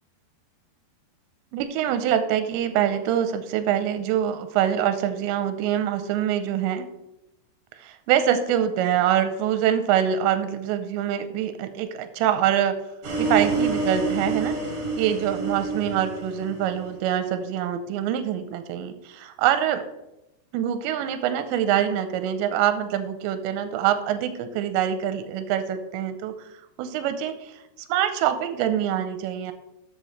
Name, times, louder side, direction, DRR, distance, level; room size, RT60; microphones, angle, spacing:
voice 1, 1.5-6.9 7.8-12.8 13.2-14.6 15.0-19.8 20.5-26.5 26.8-27.6 27.9-29.5, right 10 dB, 85° right, 9 dB, 2.9 m, -25 dB
sound 1, 13.0-17.2, right 3 dB, 50° right, 2.4 m, -27 dB
13.5 x 7.2 x 3.1 m, 0.90 s
omnidirectional pair, 5.2 m